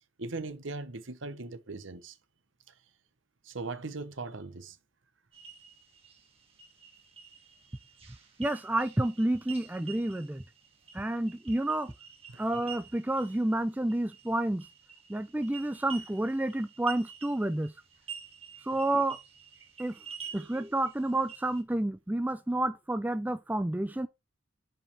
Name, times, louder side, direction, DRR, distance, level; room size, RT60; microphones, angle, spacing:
voice 1, 0.2-2.2 3.4-4.8 12.3-12.4 20.3-20.5, right 3 dB, 75° right, 1.0 m, -39 dB
sound 1, 5.3-21.6, right 7 dB, 30° right, 1.8 m, -49 dB
voice 2, 8.4-10.4 10.9-11.9 12.4-14.7 15.1-17.7 18.6-19.2 19.8-20.0 20.3-24.1, right 1 dB, 10° right, 0.3 m, -30 dB
5.7 x 5.4 x 4.6 m
head